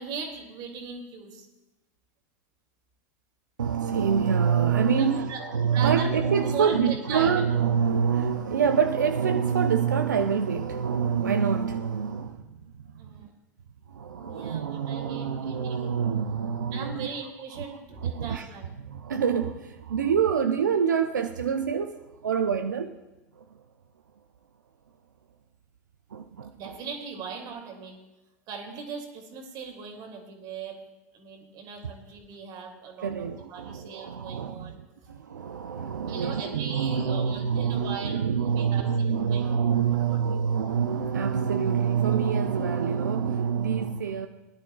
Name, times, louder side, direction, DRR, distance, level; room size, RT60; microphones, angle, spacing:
voice 1, 0.0-1.5 5.0-7.5 13.0-13.3 14.2-16.0 16.7-18.7 26.5-28.0 28.5-30.8 31.1-34.8 36.1-39.6 40.1-40.5, right 5 dB, 45° right, 3 dB, 2.4 m, -39 dB
voice 2, 3.6-12.4 13.9-17.1 17.6-17.7 18.0-18.5 18.9-22.9 26.1-26.5 33.0-34.7 35.1-44.3, right 7 dB, 85° right, 6 dB, 0.5 m, -26 dB
20.0 x 10.5 x 2.3 m, 1.0 s
hypercardioid pair, 95°, 10 cm